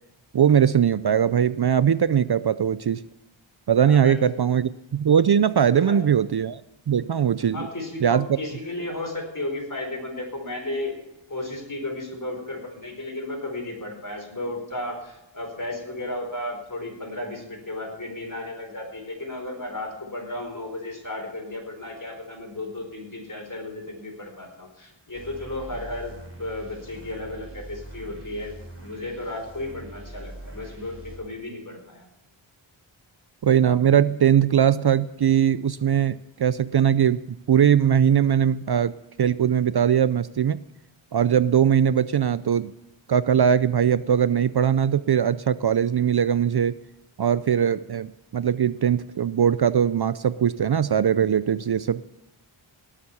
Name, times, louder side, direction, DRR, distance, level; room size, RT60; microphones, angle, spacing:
voice 1, 0.3-3.0 3.7-6.6 6.9-7.7 8.0-8.4 33.4-37.2 37.5-40.6 41.1-42.7 43.1-46.8 47.2-52.0, right 8 dB, 55° right, 16 dB, 0.5 m, -20 dB
voice 2, 3.8-4.1 5.7-6.0 7.5-10.9 11.3-32.1, left 1 dB, 40° left, 2 dB, 4.6 m, -34 dB
sound 1, 25.1-31.2, right 1 dB, 25° right, 4.2 m, -43 dB
18.5 x 7.4 x 7.0 m, 0.91 s
wide cardioid pair, 60°, 49 cm